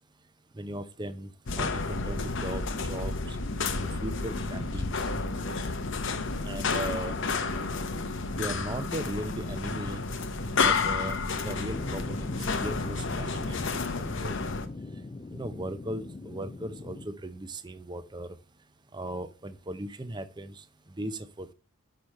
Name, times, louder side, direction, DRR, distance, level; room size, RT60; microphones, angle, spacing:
voice 1, 0.5-1.3 1.6-2.6 2.9-3.4 4.0-4.9 6.4-7.2 8.4-10.0 10.6-14.3 15.3-18.3 18.9-20.6 21.0-21.5, right 1 dB, 20° right, 11 dB, 0.6 m, -38 dB
sound 1, 1.5-14.7, left 4 dB, 60° left, 0.8 m, -31 dB
sound 2, 11.7-17.1, left 2 dB, 25° left, 0.3 m, -39 dB
6.1 x 5.1 x 5.4 m, 0.34 s
head